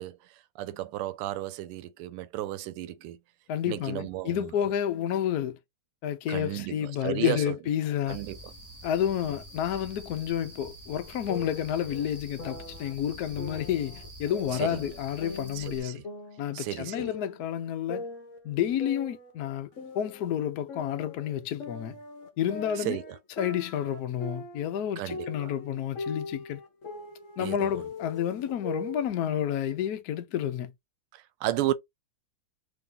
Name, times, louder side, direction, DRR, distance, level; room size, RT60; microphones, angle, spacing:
voice 1, 0.0-3.2 3.6-4.5 6.3-7.5 8.1-8.5 14.5-14.9 15.5-16.0 16.5-17.2 22.8-23.2 25.0-25.5 27.4-27.8 31.1-31.7, right 14 dB, 85° right, 1.5 m, -34 dB
voice 2, 3.5-5.6 6.0-8.2 8.8-16.0 16.4-18.1 18.4-19.7 19.9-22.0 22.4-23.0 23.4-26.6 27.4-30.7, left 10 dB, 70° left, 0.9 m, -30 dB
sound 1, 8.1-15.8, right 1 dB, 15° right, 0.7 m, -47 dB
sound 2, 11.3-12.9 13.4-14.9 15.2-17.5 17.9-20.3 20.7-24.8 25.1-29.1, left 3 dB, 45° left, 1.1 m, -41 dB
3.4 x 2.7 x 3.7 m
omnidirectional pair, 2.4 m